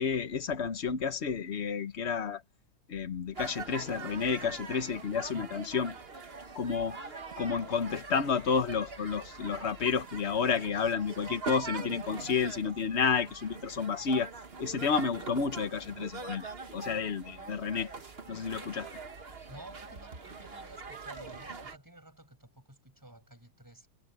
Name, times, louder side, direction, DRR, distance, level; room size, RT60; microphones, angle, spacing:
voice 1, 0.0-2.4 2.9-6.0 6.5-7.1 7.4-14.3 14.6-17.9 18.3-18.9, left 6 dB, 40° left, 1.1 m, -31 dB
sound 1, 3.3-21.8, right 4 dB, 30° right, 1.6 m, -43 dB
voice 2, 19.5-23.9, right 1 dB, 10° right, 5.9 m, -52 dB
omnidirectional pair, 2.2 m